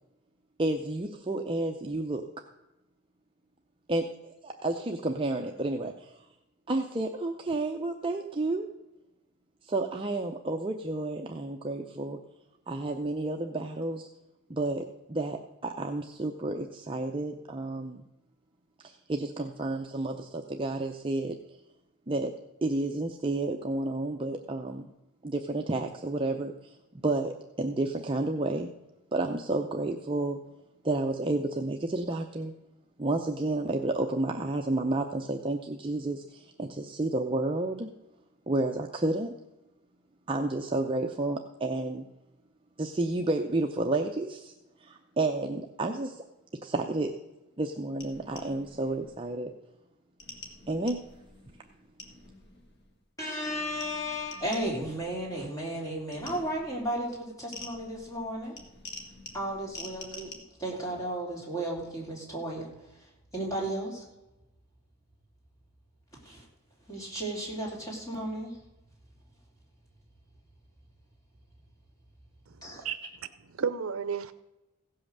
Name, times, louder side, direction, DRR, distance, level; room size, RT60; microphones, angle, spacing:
voice 1, 0.6-2.3 3.9-6.2 6.7-8.7 9.6-12.2 12.7-14.1 14.5-18.0 18.8-21.4 22.1-22.3 22.6-24.9 25.2-26.7 27.0-28.7 29.1-30.4 30.8-32.5 33.0-37.9 38.5-39.3 40.3-42.1 42.8-44.5 44.8-46.2 46.6-47.1 47.6-49.5 50.7-51.0, right 2 dB, 25° right, 3 dB, 0.5 m, -31 dB
sound 1, 48.0-49.4 50.2-53.0 53.4-55.6 56.1-60.3, left 3 dB, 50° left, 1.8 m, -48 dB
voice 2, 53.2-58.5 59.3-60.3 60.6-64.0 66.2-66.4 66.9-68.6 72.6-72.8, right 1 dB, 15° left, -3 dB, 3.0 m, -34 dB
voice 3, 72.5-73.0 73.5-74.3, right 6 dB, 70° right, 12 dB, 0.6 m, -32 dB
16.0 x 5.6 x 6.5 m, 0.97 s
head